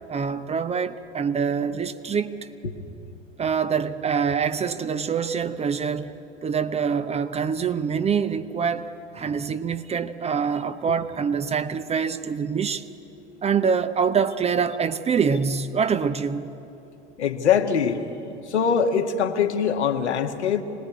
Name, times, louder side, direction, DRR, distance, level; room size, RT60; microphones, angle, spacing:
voice 1, 0.1-2.3 3.4-6.1 6.4-12.9 13.4-16.5, right 6 dB, 20° right, 0.8 m, -25 dB
voice 2, 17.2-18.0 18.5-20.6, left 7 dB, 70° left, 1.7 m, -23 dB
25.5 x 19.5 x 9.6 m
figure-of-eight pair, 80°, 34 cm